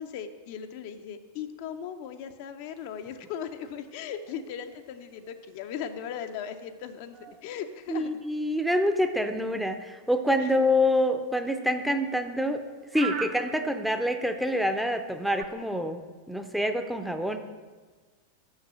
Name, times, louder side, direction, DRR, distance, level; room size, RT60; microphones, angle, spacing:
voice 1, 0.0-8.1 10.4-10.5, left 8 dB, 50° left, 8 dB, 0.5 m, -38 dB
sound 1, 2.7-15.4, right 7 dB, 40° right, 0.7 m, -47 dB
voice 2, 7.9-12.6 12.9-17.4, left 1 dB, ahead, 7 dB, 0.6 m, -26 dB
6.6 x 6.4 x 6.1 m, 1.4 s
figure-of-eight pair, 90°, 0 cm